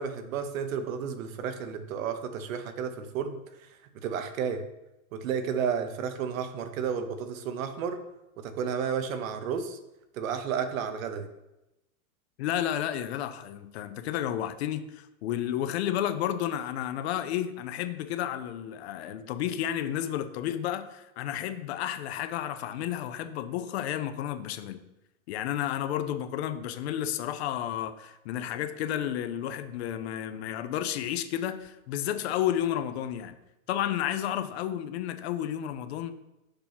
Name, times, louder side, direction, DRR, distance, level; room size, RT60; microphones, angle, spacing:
voice 1, 0.0-3.4 4.0-4.7 5.1-8.0 8.4-9.8 10.1-11.3, right 7 dB, 70° right, 9 dB, 0.9 m, -32 dB
voice 2, 12.4-24.8 25.3-33.3 33.7-36.1, left 11 dB, 50° left, 11 dB, 0.5 m, -31 dB
6.7 x 2.8 x 5.8 m, 0.93 s
supercardioid pair, 145°, 42 cm